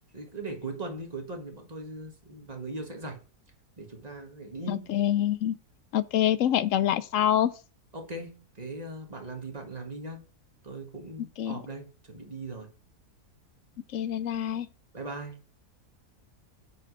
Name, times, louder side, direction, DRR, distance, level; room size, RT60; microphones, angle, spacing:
voice 1, 0.1-3.2 3.8-4.9 7.9-10.3 10.6-12.7 14.9-15.4, right 2 dB, 25° right, 1.8 m, -39 dB
voice 2, 4.7-5.6 5.9-7.5 11.4-11.6 13.9-14.7, left 11 dB, 70° left, 0.8 m, -26 dB
8.5 x 3.9 x 6.1 m
omnidirectional pair, 1.7 m